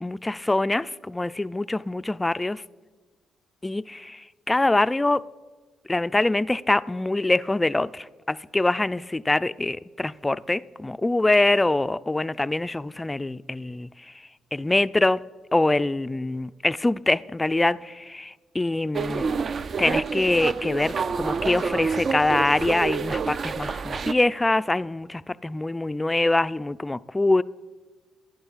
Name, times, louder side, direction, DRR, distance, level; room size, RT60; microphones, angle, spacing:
voice 1, 0.0-2.6 3.6-5.2 5.9-14.1 14.5-15.2 15.5-19.3 19.8-27.4, left 2 dB, 15° left, 0.3 m, -24 dB
sound 1, 18.9-24.1, right 5 dB, 50° right, 0.4 m, -28 dB
15.0 x 10.5 x 5.6 m
cardioid pair, 90°, 0 cm